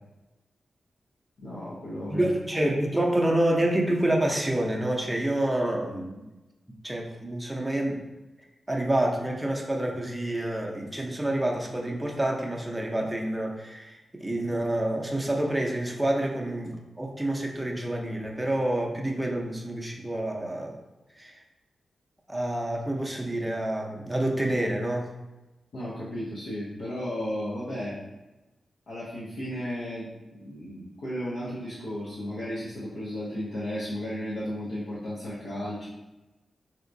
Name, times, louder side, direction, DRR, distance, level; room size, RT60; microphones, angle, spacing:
voice 1, 1.4-2.3 25.7-28.0 28.9-35.9, equal, 85° left, -10 dB, 0.8 m, -34 dB
voice 2, 2.1-6.2 6.8-8.0 8.7-20.7 21.2-21.4 22.3-25.1, right 1 dB, 10° right, 0 dB, 0.6 m, -28 dB
3.4 x 2.8 x 2.6 m, 1.0 s
cardioid pair, 65°, 0 cm